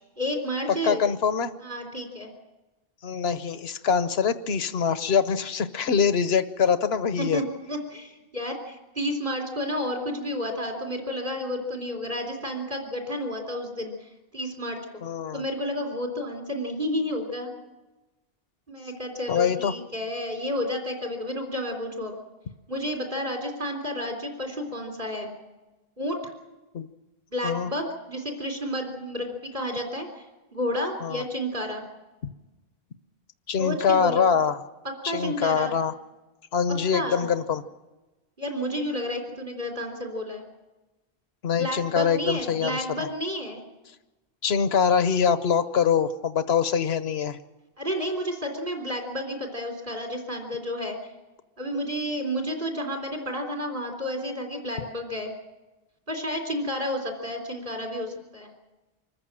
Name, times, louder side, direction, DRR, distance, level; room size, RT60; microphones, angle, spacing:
voice 1, 0.2-1.0 1.6-2.3 7.2-15.0 15.3-17.5 18.7-22.1 22.7-25.3 26.0-26.3 27.3-30.3 30.5-31.8 33.6-34.2 34.8-35.7 36.9-37.3 38.4-40.5 41.5-43.6 47.8-51.0 51.6-55.3 56.1-58.5, equal, 55° right, 1 dB, 3.7 m, -31 dB
voice 2, 0.8-1.5 3.0-7.4 15.0-15.4 19.3-19.7 26.7-26.9 27.4-27.7 31.0-31.2 33.5-34.6 35.0-35.9 36.5-37.6 41.4-43.1 44.4-47.4, left 6 dB, 85° left, 12 dB, 1.2 m, -24 dB
25.0 x 14.5 x 8.8 m, 1.1 s
omnidirectional pair, 1.0 m